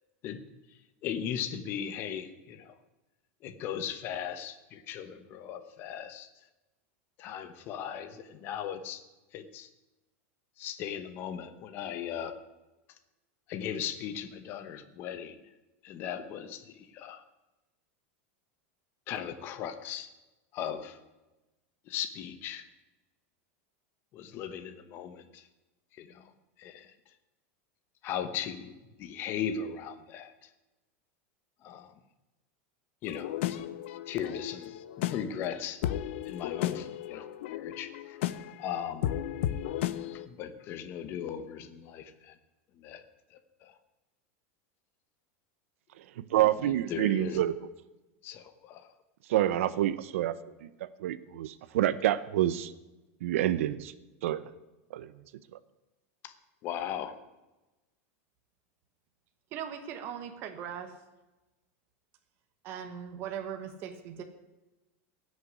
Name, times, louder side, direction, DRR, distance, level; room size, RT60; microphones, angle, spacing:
voice 1, 1.0-2.8 3.4-6.3 7.2-9.0 9.3-9.7 10.6-12.4 13.5-15.4 15.8-17.3 19.1-20.1 20.5-21.0 21.9-22.6 24.1-25.5 25.9-26.3 26.6-26.9 28.0-30.5 31.6-31.9 33.0-33.6 34.1-34.7 35.0-35.8 36.2-38.2 38.6-39.2 40.1-42.4 42.8-43.0 43.3-43.8 46.3-47.4 48.2-48.9 56.2-56.3 56.6-57.1, left 8 dB, 30° left, 9 dB, 1.0 m, -38 dB
sound 1, 33.0-40.3, left 12 dB, 60° left, 0.7 m, -34 dB
voice 2, 46.0-47.5 49.3-50.3 50.6-52.7 53.2-53.9 54.2-54.5 54.9-55.1, right 13 dB, 75° right, 15 dB, 0.7 m, -28 dB
voice 3, 59.5-60.9 62.6-64.2, right 8 dB, 30° right, 6 dB, 1.2 m, -39 dB
16.5 x 6.5 x 9.5 m, 1.1 s
supercardioid pair, 175°, 7 cm